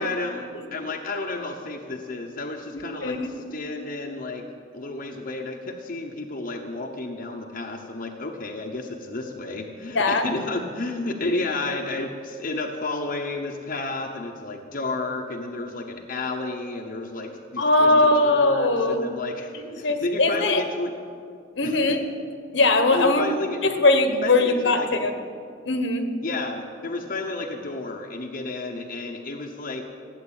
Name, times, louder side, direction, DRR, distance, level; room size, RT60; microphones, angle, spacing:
voice 1, 0.0-3.2 3.5-4.4 4.7-20.9 21.6-22.0 22.9-23.6 24.2-25.0 26.2-29.8, left 2 dB, 45° left, 1 dB, 0.9 m, -31 dB
voice 2, 2.7-3.3 9.9-10.3 11.2-11.3 17.6-19.1 19.8-20.6 21.6-22.0 22.5-23.2 23.6-25.1 25.7-26.1, left 2 dB, 70° left, 7 dB, 1.3 m, -20 dB
16.0 x 8.1 x 8.8 m, 2.3 s
head